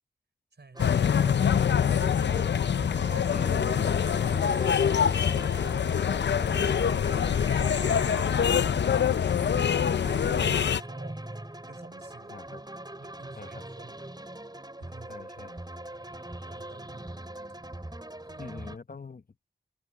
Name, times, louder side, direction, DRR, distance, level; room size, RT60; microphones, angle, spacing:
voice 1, 0.5-2.7 3.1-3.7 9.6-12.4 13.0-14.1 14.8-15.2 16.4-17.1 18.3-18.6, right 3 dB, 70° right, 5.4 m, -51 dB
sound 1, 0.7-18.8, right 1 dB, 20° right, 4.7 m, -41 dB
sound 2, 0.8-10.8, left 8 dB, 75° left, 0.4 m, -25 dB
voice 2, 3.3-3.8 9.4-10.1 12.3-12.6 13.4-13.5 15.1-15.6 18.4-19.2, left 4 dB, 50° left, 1.0 m, -42 dB
wide cardioid pair, 50°, 18 cm